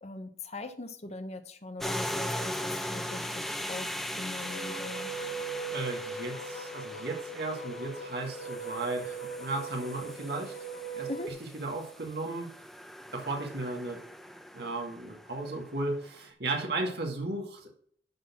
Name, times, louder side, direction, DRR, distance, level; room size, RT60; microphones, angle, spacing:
voice 1, 0.0-5.1 11.1-11.3, left 2 dB, 40° left, 9 dB, 1.0 m, -41 dB
sound 1, 1.8-15.9, equal, ahead, 0.8 m, -39 dB
sound 2, 4.4-11.3, right 4 dB, 80° left, 1.1 m, -40 dB
voice 2, 5.7-10.5 10.9-11.1 11.6-12.5 13.1-14.0 14.5-17.7, right 2 dB, 65° right, 1 dB, 2.2 m, -35 dB
11.5 x 4.1 x 6.1 m, 0.62 s
head